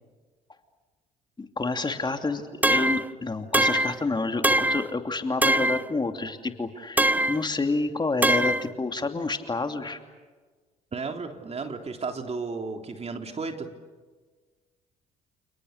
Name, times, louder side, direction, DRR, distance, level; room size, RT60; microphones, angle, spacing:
voice 1, 1.4-10.0, left 3 dB, 25° left, 6 dB, 2.8 m, -29 dB
sound 1, 2.6-3.1 3.5-4.0 4.4-4.9 5.4-5.9 7.0-7.4 8.2-8.7, right 1 dB, 10° right, 0.9 m, -22 dB
voice 2, 10.9-13.7, right 4 dB, 35° right, 4 dB, 3.5 m, -33 dB
30.0 x 29.5 x 6.7 m, 1.4 s
hypercardioid pair, 60°, 18 cm